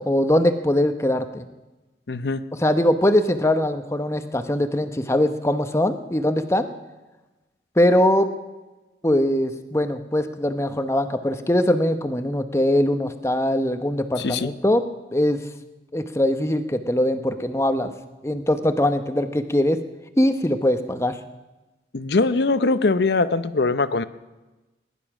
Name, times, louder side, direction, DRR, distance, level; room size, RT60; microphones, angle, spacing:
voice 1, 0.0-1.5 2.6-6.7 7.8-8.3 9.0-14.8 15.1-15.4 15.9-17.9 18.2-19.8 20.2-21.2, left 1 dB, 15° left, 9 dB, 0.8 m, -21 dB
voice 2, 2.1-2.4 14.2-14.5 21.9-24.0, left 3 dB, 75° left, 14 dB, 0.7 m, -21 dB
19.5 x 11.0 x 6.1 m, 1.1 s
head